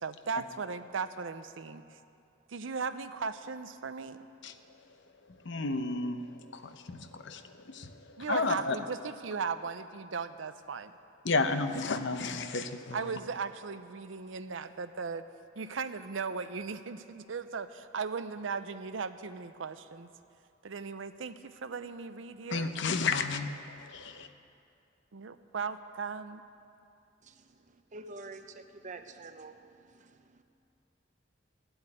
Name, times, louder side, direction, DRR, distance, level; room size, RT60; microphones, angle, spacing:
voice 1, 0.0-1.8 2.5-4.3 8.2-10.9 12.9-15.2 15.6-20.1 20.6-22.7 25.1-26.4, right 5 dB, 75° right, 11 dB, 0.6 m, -37 dB
voice 2, 5.4-6.2 6.5-8.8 11.2-13.1 22.5-24.3, left 3 dB, 70° left, 9 dB, 0.8 m, -32 dB
voice 3, 27.9-29.6 29.9-30.4, right 3 dB, 40° right, 8 dB, 0.7 m, -47 dB
13.5 x 7.9 x 10.0 m, 2.5 s
head